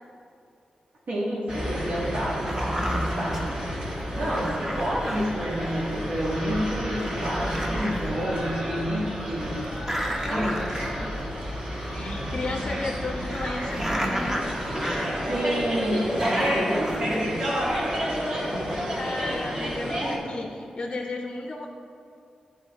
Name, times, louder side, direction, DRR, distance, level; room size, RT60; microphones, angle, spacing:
voice 1, 1.1-3.5 4.1-9.6 10.3-11.1 15.3-17.4, equal, 80° right, -7 dB, 1.5 m, -29 dB
sound 1, 1.5-20.2, equal, 40° right, 1.5 m, -30 dB
sound 2, 2.5-3.5 4.3-6.0 6.7-6.8 7.0-8.2 8.4-8.5 9.8-11.2 11.5-11.6 12.7-15.6 16.0-17.2, equal, 20° right, 0.8 m, -32 dB
voice 2, 10.2-10.9 11.9-14.5 18.9-21.7, left 2 dB, 40° left, 3 dB, 0.5 m, -34 dB
9.0 x 3.7 x 3.9 m, 2.6 s
cardioid pair, 65°, 2 cm